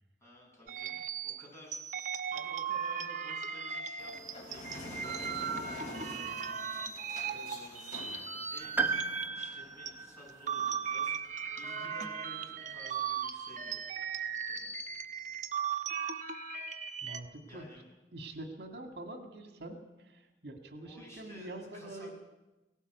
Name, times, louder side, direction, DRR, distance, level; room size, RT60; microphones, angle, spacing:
voice 1, 0.2-1.8 2.0-6.3 6.5-6.8 7.3-13.9 14.5-14.8 17.5-17.9 20.8-22.1, equal, 15° left, -3 dB, 7.8 m, -54 dB
sound 1, 0.7-9.9 10.3-17.2, right 7 dB, 45° right, 1.2 m, -37 dB
sound 2, 4.0-9.2, left 1 dB, 45° left, 3.7 m, -46 dB
Piano, 8.8-12.9 14.2-14.3, right 5 dB, 10° right, 1.2 m, -37 dB
voice 2, 17.0-17.7 18.1-22.1, right 1 dB, 65° right, 5 dB, 2.0 m, -45 dB
18.5 x 17.5 x 8.1 m, 1.1 s
head